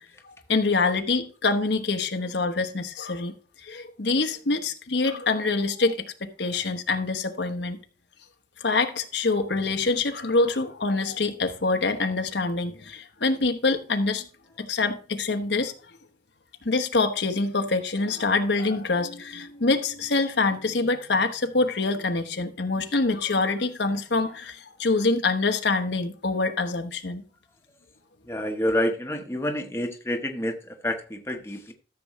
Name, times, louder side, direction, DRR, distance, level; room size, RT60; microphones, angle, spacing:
voice 1, 0.5-3.3 3.7-7.8 8.6-14.2 14.6-15.7 16.6-27.2, left 3 dB, 75° left, 1.1 m, -25 dB
voice 2, 28.3-31.7, left 1 dB, 15° left, 1.0 m, -28 dB
13.5 x 6.9 x 3.1 m
head